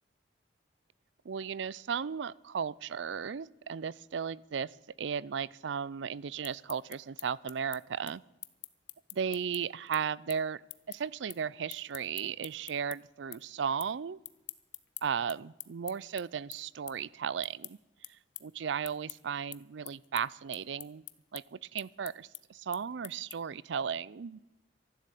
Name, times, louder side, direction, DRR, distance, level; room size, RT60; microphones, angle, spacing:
voice 1, 1.3-8.2 9.1-10.6 10.9-14.2 15.0-17.8 18.4-21.0 21.3-24.4, right 7 dB, 70° right, 23 dB, 0.4 m, -35 dB
sound 1, 6.2-13.0 13.3-13.9 14.2-23.6, left 18 dB, 70° left, 0.7 m, -47 dB
13.0 x 11.5 x 8.3 m, 0.99 s
head